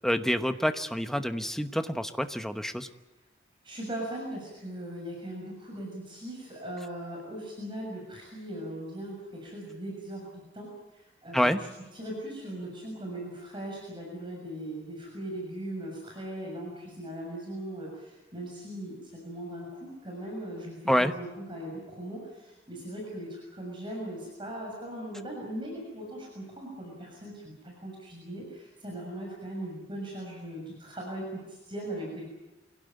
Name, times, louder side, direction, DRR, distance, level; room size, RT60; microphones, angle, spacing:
voice 1, 0.0-2.9 11.3-11.6 20.9-21.1, equal, ahead, 8 dB, 1.0 m, -27 dB
voice 2, 3.6-10.3 10.5-11.7 11.9-32.3, right 1 dB, 25° right, -2 dB, 6.9 m, -39 dB
25.5 x 17.0 x 9.2 m, 1.0 s
head